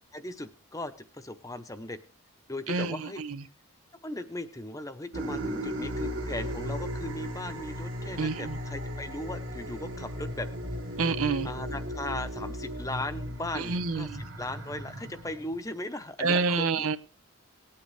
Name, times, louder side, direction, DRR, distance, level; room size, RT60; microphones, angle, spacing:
voice 1, 0.1-2.0 2.5-3.2 4.0-10.5 11.4-16.9, left 1 dB, 15° left, 0.8 m, -38 dB
voice 2, 2.7-3.4 8.2-8.6 11.0-11.5 13.5-14.2 16.2-17.0, right 4 dB, 90° right, 0.9 m, -28 dB
sound 1, 5.1-15.7, equal, 60° right, 1.7 m, -36 dB
19.0 x 8.8 x 3.2 m
head